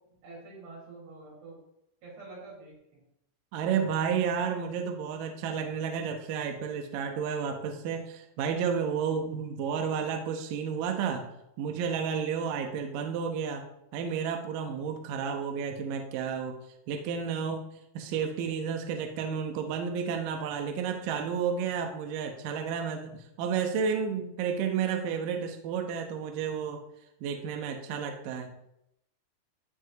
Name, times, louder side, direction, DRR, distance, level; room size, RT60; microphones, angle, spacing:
voice 1, 0.2-1.6 2.0-3.0, right 3 dB, 60° right, -5 dB, 6.7 m, -47 dB
voice 2, 3.5-11.3 11.6-13.6 13.9-16.6 16.9-17.7 17.9-26.8 27.2-28.5, right 6 dB, 85° right, 4 dB, 1.9 m, -31 dB
14.5 x 8.4 x 3.0 m, 0.81 s
omnidirectional pair, 5.5 m